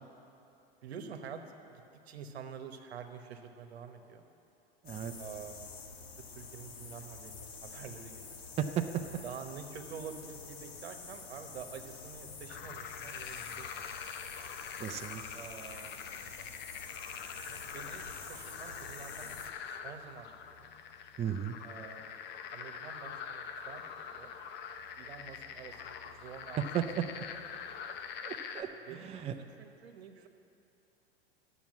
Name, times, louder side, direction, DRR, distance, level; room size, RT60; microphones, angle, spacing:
voice 1, 0.8-1.4 1.7-4.2 5.1-5.7 6.3-8.4 9.2-14.0 15.3-16.0 17.4-20.7 21.6-22.2 22.5-24.3 25.0-26.6 28.9-30.3, right 6 dB, 80° right, 6 dB, 1.1 m, -48 dB
sound 1, 4.8-19.5, left 5 dB, 75° left, 1.4 m, -48 dB
sound 2, 12.5-28.6, left 7 dB, 35° left, 0.7 m, -44 dB
voice 2, 14.8-15.2 21.2-21.5 26.7-27.0 28.2-28.7 29.0-29.3, right 10 dB, 20° right, 6 dB, 0.5 m, -34 dB
10.5 x 7.1 x 7.3 m, 2.8 s
hypercardioid pair, 105°, 31 cm